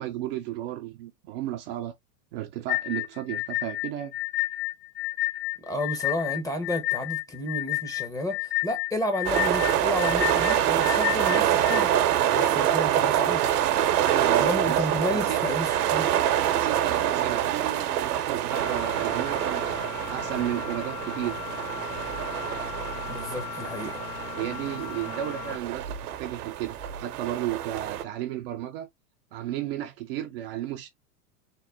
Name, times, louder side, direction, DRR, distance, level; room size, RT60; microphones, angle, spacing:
voice 1, 0.0-1.9 2.3-4.2 12.4-12.6 14.0-15.4 16.5-19.8 20.0-21.5 24.3-28.9 29.3-30.9, right 12 dB, 40° right, 0.4 m, -33 dB
sound 1, 2.7-11.8, left 19 dB, 80° left, 1.0 m, -30 dB
voice 2, 5.6-11.9 12.3-13.5 14.4-16.1 23.1-24.0, left 1 dB, 5° left, 0.6 m, -31 dB
sound 2, 9.2-28.0, right 11 dB, 65° right, 0.8 m, -26 dB
sound 3, 18.5-25.6, left 13 dB, 60° left, 0.7 m, -38 dB
3.7 x 2.1 x 3.3 m
hypercardioid pair, 110°, 48 cm